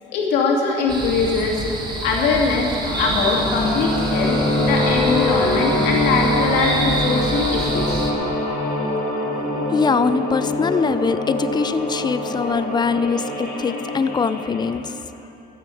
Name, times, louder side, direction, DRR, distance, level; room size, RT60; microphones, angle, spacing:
voice 1, 0.0-2.7 3.0-8.0, left 4 dB, 85° left, -1 dB, 2.6 m, -22 dB
sound 1, 0.9-8.1, right 2 dB, 25° right, 1.8 m, -28 dB
sound 2, 2.8-14.8, left 1 dB, 60° left, 2.8 m, -24 dB
voice 2, 9.7-15.0, left 5 dB, 25° left, 13 dB, 0.5 m, -22 dB
13.0 x 8.0 x 8.4 m, 2.8 s
cardioid pair, 110°, 17 cm